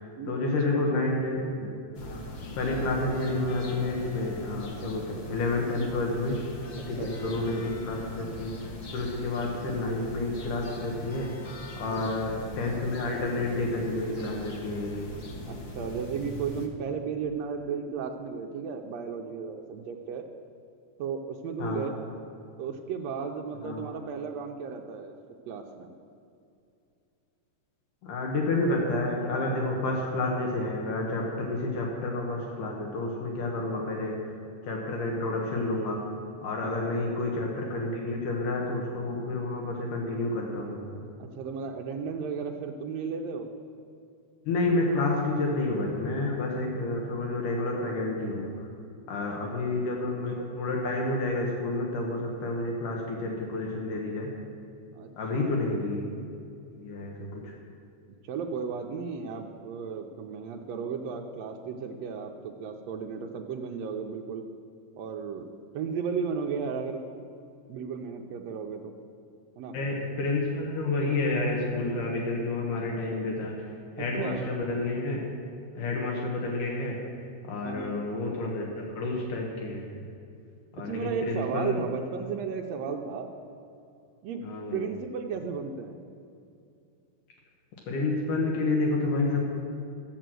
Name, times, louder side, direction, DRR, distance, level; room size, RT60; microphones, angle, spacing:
voice 1, 0.0-1.7 2.0-11.3 11.8-15.1 21.6-21.9 23.6-23.9 28.0-40.8 44.4-48.7 49.1-54.3 55.2-56.1 56.7-57.5 69.7-75.2 75.8-77.0 77.4-79.9 80.7-81.8 84.4-84.8 87.9-89.4, left 2 dB, 75° left, -1 dB, 2.9 m, -30 dB
voice 2, 0.7-1.0 7.0-7.4 11.9-12.1 15.5-20.3 21.0-21.9 22.6-25.1 25.5-25.9 36.6-37.0 41.2-43.5 49.4-49.8 54.9-55.1 55.4-55.8 58.2-64.5 65.0-65.5 65.7-67.0 67.7-68.9 69.6-69.8 74.0-74.4 77.6-78.0 80.9-83.3 84.2-84.4 84.7-86.0, right 6 dB, 75° right, 2 dB, 1.6 m, -34 dB
sound 1, 1.9-16.7, left 1 dB, 60° left, 1.0 m, -41 dB
13.5 x 8.0 x 7.6 m, 2.6 s
omnidirectional pair, 3.7 m